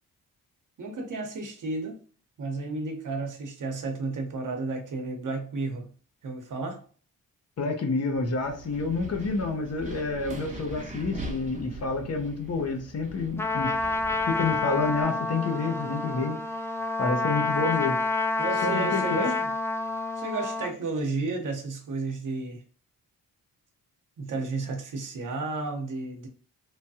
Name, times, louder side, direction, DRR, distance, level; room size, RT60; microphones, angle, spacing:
voice 1, 0.8-2.0 2.4-5.9 6.2-6.8 17.6-17.9 18.4-19.5 20.2-22.6 24.2-26.3, right 3 dB, 60° right, 0.9 m, -32 dB
voice 2, 7.6-13.8 14.3-16.4 17.0-18.0 18.6-19.4, left 3 dB, 45° left, 0.7 m, -28 dB
Wind, 8.2-15.0, right 1 dB, 20° right, 0.8 m, -41 dB
Trumpet, 13.4-20.7, left 3 dB, 10° left, 0.3 m, -28 dB
3.2 x 2.2 x 2.7 m
cardioid pair, 70°, 35 cm